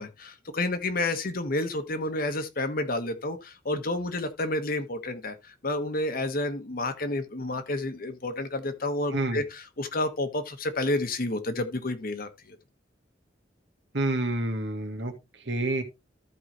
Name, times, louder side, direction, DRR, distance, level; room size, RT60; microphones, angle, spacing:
voice 1, 0.0-12.6, left 2 dB, 55° left, 1.2 m, -30 dB
voice 2, 13.9-15.1 15.5-15.8, right 2 dB, 75° right, 1.7 m, -28 dB
14.0 x 4.8 x 3.0 m
head